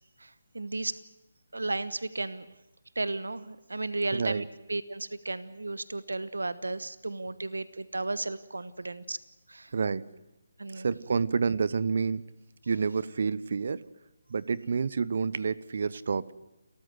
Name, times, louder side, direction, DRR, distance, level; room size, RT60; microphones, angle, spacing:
voice 1, 0.2-1.0 1.5-2.5 2.9-9.2 9.5-9.7 10.6-10.9, right 2 dB, 80° right, 16 dB, 1.1 m, -34 dB
voice 2, 4.1-4.4 9.7-10.0 10.7-12.3 12.7-13.8 14.3-16.3, right 5 dB, 55° right, 20 dB, 0.9 m, -29 dB
29.5 x 14.5 x 7.9 m, 0.99 s
figure-of-eight pair, 150°, 0 cm